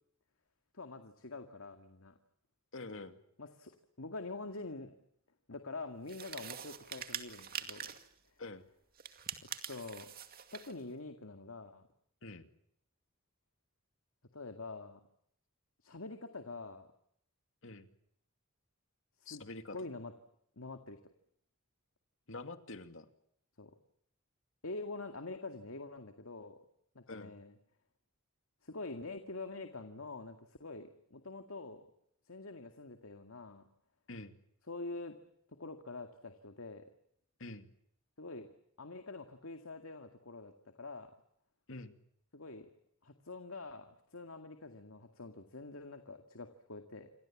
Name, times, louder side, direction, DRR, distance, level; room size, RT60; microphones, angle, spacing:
voice 1, 0.7-2.1 3.4-3.7 4.0-4.9 5.5-7.9 9.7-10.1 10.5-11.8 14.3-15.0 15.8-16.9 19.2-19.4 19.7-20.1 20.6-21.0 23.6-23.7 24.6-26.6 27.0-27.5 28.6-31.8 32.3-33.6 34.7-35.2 35.6-36.9 38.2-38.5 38.8-40.5 40.8-41.1 42.3-42.7 43.0-47.1, left 3 dB, 85° left, 6 dB, 2.2 m, -45 dB
voice 2, 2.7-3.2 8.4-8.7 12.2-12.5 17.6-17.9 19.3-19.8 22.3-23.1 27.1-27.3 34.1-34.4 37.4-37.7 41.7-42.0, left 2 dB, 70° left, 8 dB, 2.5 m, -46 dB
sound 1, 6.1-8.1 9.0-10.8, right 8 dB, 45° right, 2.3 m, -44 dB
28.5 x 24.5 x 7.5 m, 0.71 s
head